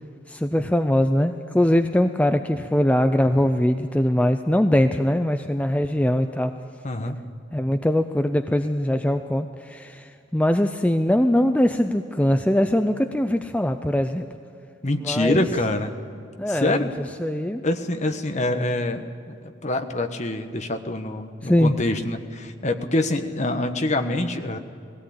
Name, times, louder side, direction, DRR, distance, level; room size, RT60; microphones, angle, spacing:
voice 1, 0.3-6.5 7.5-10.0 10.3-14.3 14.9-15.4 16.4-16.9 17.2-17.6 21.4-21.7, left 1 dB, 10° left, 7 dB, 0.5 m, -21 dB
voice 2, 6.8-7.2 14.8-15.9 16.5-16.9 17.6-19.3 19.6-24.6, left 2 dB, 40° left, 7 dB, 1.2 m, -25 dB
20.5 x 17.0 x 8.7 m, 2.4 s
head